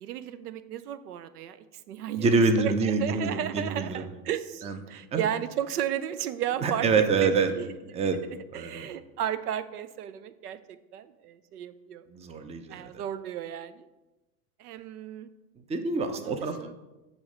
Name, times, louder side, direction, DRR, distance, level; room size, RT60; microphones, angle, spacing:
voice 1, 0.0-7.7 8.5-12.0 12.7-13.9 14.6-15.3 16.1-16.7, right 10 dB, 85° right, 14 dB, 0.6 m, -34 dB
voice 2, 2.2-4.0 4.6-5.3 6.6-7.5 7.9-8.2 8.5-8.9 12.1-13.0 15.7-16.6, right 4 dB, 15° right, 8 dB, 0.5 m, -26 dB
8.2 x 3.1 x 5.0 m, 1.1 s
hypercardioid pair, 95°, 45 cm